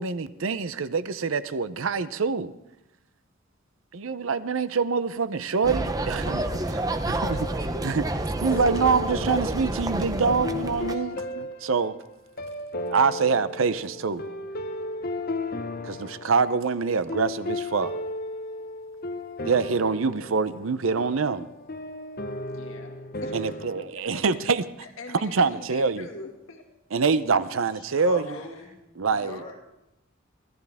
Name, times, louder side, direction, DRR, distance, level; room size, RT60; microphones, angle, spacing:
voice 1, 0.0-2.5 3.9-7.5 7.8-11.9 12.9-14.2 15.8-17.9 19.4-21.5 23.3-24.6 25.1-26.1 26.9-28.3 29.0-29.4, right 5 dB, 70° right, 0.6 m, -25 dB
sound 1, 5.6-11.0, right 1 dB, 15° right, 0.7 m, -29 dB
sound 2, 7.2-8.2 8.5-23.9, left 2 dB, 45° left, 1.1 m, -35 dB
voice 2, 22.5-24.2 24.8-26.6 28.2-28.7, left 2 dB, 70° left, 1.9 m, -43 dB
voice 3, 27.7-29.6, left 2 dB, 25° left, 5.7 m, -41 dB
24.5 x 15.0 x 3.5 m
head